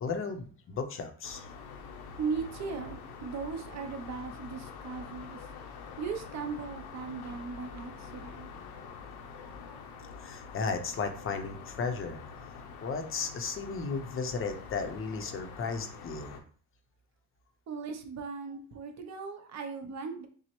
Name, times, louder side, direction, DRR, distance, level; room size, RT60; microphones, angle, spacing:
voice 1, 0.0-1.5 10.2-12.2 12.8-16.4, left 5 dB, 35° left, 7 dB, 0.6 m, -35 dB
sound 1, 1.2-16.4, left 5 dB, 85° left, 0.8 m, -46 dB
voice 2, 2.2-5.5 6.0-8.5 17.7-20.3, right 5 dB, 50° right, 5 dB, 0.6 m, -38 dB
6.0 x 2.0 x 2.9 m, 0.43 s
cardioid pair, 145°, 36 cm